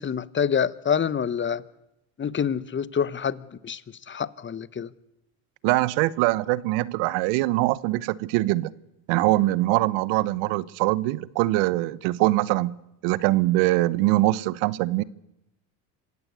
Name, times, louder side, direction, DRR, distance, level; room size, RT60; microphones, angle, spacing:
voice 1, 0.0-1.6 2.2-3.8 4.1-4.9, left 7 dB, 25° left, 1.1 m, -26 dB
voice 2, 5.6-8.7 9.1-12.8 13.0-15.0, right 18 dB, 70° right, 1.1 m, -23 dB
26.0 x 17.0 x 8.2 m
supercardioid pair, 90°, 47 cm